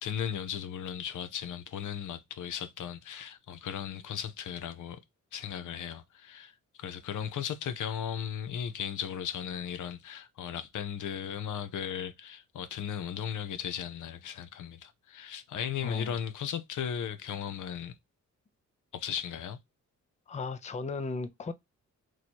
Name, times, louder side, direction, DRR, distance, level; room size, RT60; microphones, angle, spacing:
voice 1, 0.0-5.0 5.3-6.5 6.8-17.9 18.9-19.6, left 8 dB, 80° left, 0.6 m, -36 dB
voice 2, 15.8-16.2 20.3-21.5, left 4 dB, 25° left, 0.4 m, -36 dB
3.1 x 2.8 x 4.2 m
wide cardioid pair, 115°, 30 cm